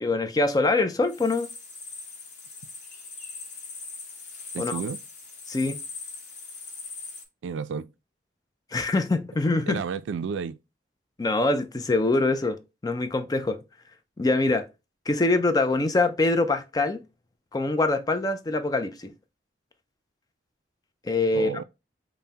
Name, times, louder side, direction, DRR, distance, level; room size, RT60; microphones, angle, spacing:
voice 1, 0.0-1.5 4.6-4.8 5.5-5.8 8.7-9.8 11.2-12.6 12.8-13.6 14.2-14.7 15.1-17.0 17.5-19.1 21.0-21.5, left 2 dB, 20° left, 0.4 m, -24 dB
sound 1, 1.0-7.2, left 4 dB, 40° left, 1.0 m, -40 dB
voice 2, 4.5-5.0 7.4-7.9 9.7-10.6 21.3-21.6, right 6 dB, 80° right, 0.3 m, -31 dB
5.4 x 2.1 x 2.8 m
head